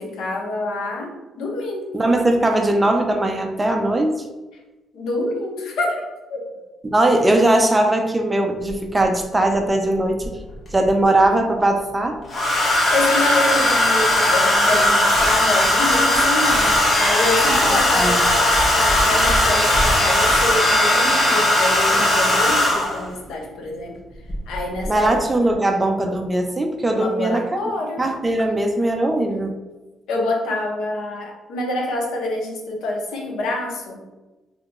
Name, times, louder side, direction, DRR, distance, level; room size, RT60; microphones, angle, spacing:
voice 1, 0.0-1.9 4.9-6.6 12.9-24.0 24.5-25.1 26.9-28.1 30.1-34.0, left 2 dB, 85° left, 1 dB, 0.7 m, -26 dB
voice 2, 1.9-4.3 6.8-10.4 10.7-12.2 17.5-18.3 24.9-27.4 28.0-29.5, right 1 dB, 15° right, 4 dB, 0.3 m, -20 dB
Domestic sounds home sounds, 8.7-8.8 10.2-10.9 12.3-23.1 24.3-24.6 24.8-25.2, left 1 dB, 35° left, 0.7 m, -18 dB
2.8 x 2.3 x 4.0 m, 1.1 s
cardioid pair, 155°, 0 cm